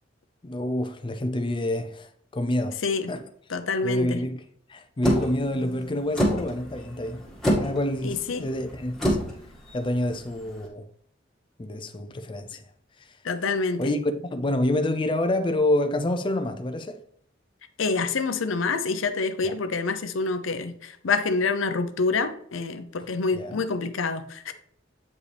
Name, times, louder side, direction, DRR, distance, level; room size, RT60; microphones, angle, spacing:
voice 1, 0.4-2.8 3.1-3.2 3.8-4.4 4.7-7.2 7.6-9.2 9.7-10.9 11.6-12.6 13.8-17.0 19.4-19.6 23.3-23.6, left 1 dB, 25° left, 0.5 m, -27 dB
voice 2, 3.5-4.2 8.0-8.5 13.2-13.9 17.8-24.5, left 4 dB, 90° left, 0.7 m, -27 dB
sound 1, 5.0-10.6, equal, ahead, 1.9 m, -28 dB
8.2 x 5.0 x 3.4 m
head